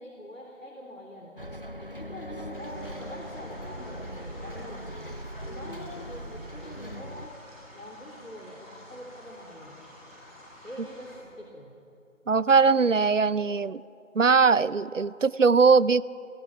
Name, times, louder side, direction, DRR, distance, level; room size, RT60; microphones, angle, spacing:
voice 1, 0.0-1.4 1.8-4.9 5.5-7.3 7.7-9.8 10.6-11.7, left 1 dB, 75° left, -1 dB, 3.7 m, -44 dB
Bus, 1.4-7.3, equal, 45° left, 0.6 m, -40 dB
sound 1, 2.5-11.2, left 1 dB, 10° right, 4.4 m, -50 dB
voice 2, 12.3-13.8 14.1-16.0, right 5 dB, 70° right, 20 dB, 0.6 m, -20 dB
23.0 x 22.0 x 6.1 m, 2.8 s
figure-of-eight pair, 180°, 39 cm